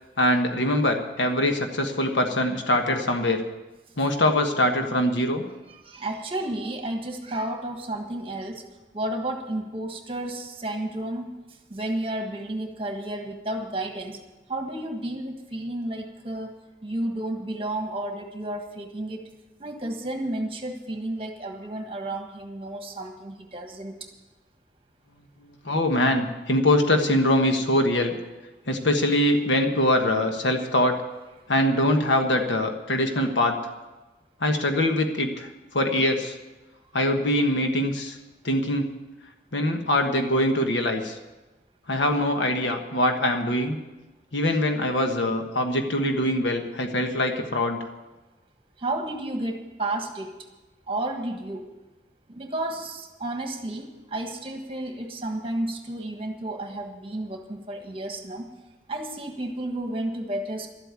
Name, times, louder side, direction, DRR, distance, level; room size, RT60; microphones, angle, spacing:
voice 1, 0.2-3.4 4.0-5.4 25.6-28.1 28.7-30.9 31.5-33.5 34.4-35.5 35.7-36.4 36.9-38.2 38.4-38.9 39.5-41.2 41.9-43.8 44.3-47.8, left 1 dB, 85° left, 4 dB, 1.4 m, -23 dB
voice 2, 5.7-8.6 8.9-11.3 11.7-14.2 14.5-16.6 16.8-19.2 19.6-24.1 48.8-50.4 50.9-51.7 52.3-58.5 58.9-60.7, right 1 dB, 30° right, 4 dB, 1.5 m, -32 dB
12.5 x 8.3 x 9.5 m, 1.1 s
head